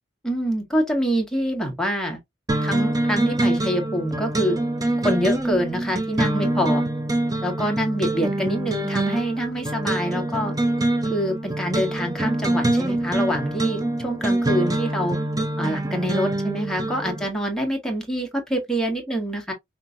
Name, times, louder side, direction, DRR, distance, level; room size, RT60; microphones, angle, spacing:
voice 1, 0.2-2.2 2.6-4.6 5.0-6.8 7.4-10.5 11.1-15.2 15.6-19.5, equal, 5° left, 1.8 m, -25 dB
sound 1, 2.5-17.3, right 1 dB, 20° right, 0.8 m, -25 dB
5.8 x 3.3 x 2.5 m
head